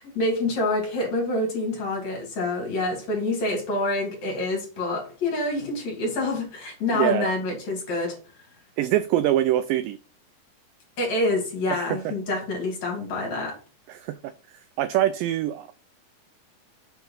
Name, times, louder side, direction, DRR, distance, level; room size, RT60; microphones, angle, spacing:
voice 1, 0.1-8.2 11.0-13.6, left 2 dB, 50° left, 3.5 m, -27 dB
voice 2, 6.9-7.3 8.8-10.0 11.7-12.1 13.9-15.7, right 13 dB, 85° right, 2.0 m, -24 dB
7.5 x 4.5 x 5.4 m
omnidirectional pair, 4.4 m